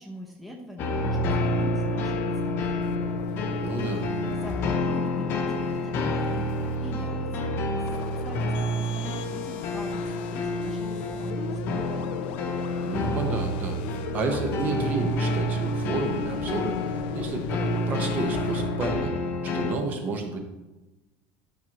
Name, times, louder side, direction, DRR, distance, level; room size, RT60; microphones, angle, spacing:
voice 1, 0.0-2.9 4.0-6.5 6.8-7.6 8.2-12.1, left 1 dB, ahead, -2 dB, 0.9 m, -43 dB
sound 1, 0.8-19.7, left 1 dB, 45° left, 1.0 m, -28 dB
sound 2, 2.6-18.6, left 10 dB, 80° left, 0.5 m, -40 dB
voice 2, 3.6-4.1 12.8-13.8 14.1-19.1 19.4-20.4, right 3 dB, 30° right, 4 dB, 1.2 m, -31 dB
11.5 x 6.1 x 3.1 m, 1.1 s
cardioid pair, 155°, 5 cm